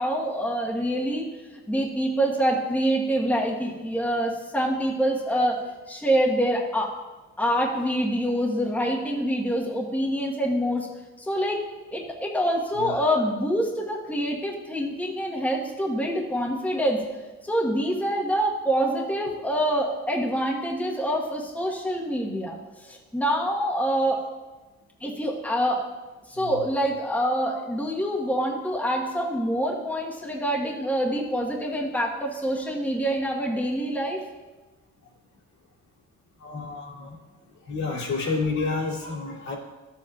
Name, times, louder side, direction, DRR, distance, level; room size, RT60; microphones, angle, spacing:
voice 1, 0.0-1.3 1.7-5.6 5.9-6.9 7.4-10.9 11.2-11.6 11.9-17.0 17.4-24.2 25.0-25.8 26.3-34.2, equal, 5° left, -2 dB, 1.1 m, -26 dB
voice 2, 12.7-13.2 26.3-26.6 36.4-37.1 37.6-39.5, left 3 dB, 65° left, -4 dB, 2.5 m, -30 dB
12.5 x 7.5 x 2.4 m, 1.2 s
cardioid pair, 90°, 30 cm